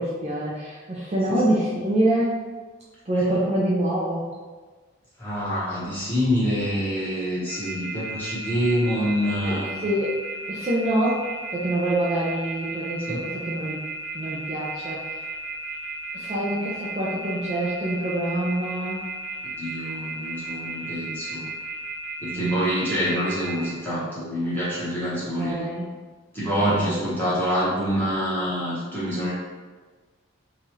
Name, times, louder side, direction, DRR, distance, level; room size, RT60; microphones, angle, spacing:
voice 1, 0.0-2.4 3.1-4.2 9.4-10.2 10.5-11.2 11.5-13.8 14.1-15.1 16.1-19.0 22.3-22.8 25.4-25.9 26.8-27.3, right 1 dB, 30° right, -6 dB, 0.4 m, -26 dB
voice 2, 5.2-9.7 13.1-13.2 19.6-21.5 22.2-25.7 26.3-29.3, equal, 10° left, -10 dB, 1.0 m, -26 dB
sound 1, 7.5-23.7, right 4 dB, 15° right, 0.8 m, -34 dB
3.0 x 2.3 x 2.9 m, 1.4 s
head